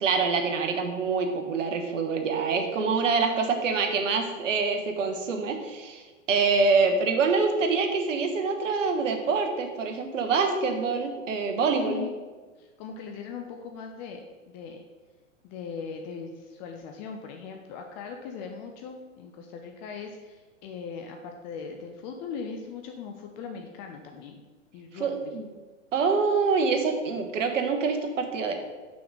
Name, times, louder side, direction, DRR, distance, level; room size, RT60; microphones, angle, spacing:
voice 1, 0.0-12.0 25.0-25.5 25.9-28.5, right 4 dB, 75° right, 5 dB, 1.2 m, -26 dB
Keyboard (musical), 2.1-4.1, right 12 dB, 90° left, 1.7 m, -38 dB
voice 2, 10.5-10.8 11.8-12.2 12.6-14.8 15.4-24.4 24.7-25.3, left 5 dB, 35° left, 4 dB, 0.7 m, -39 dB
5.9 x 3.9 x 6.1 m, 1.3 s
hypercardioid pair, 115°, 38 cm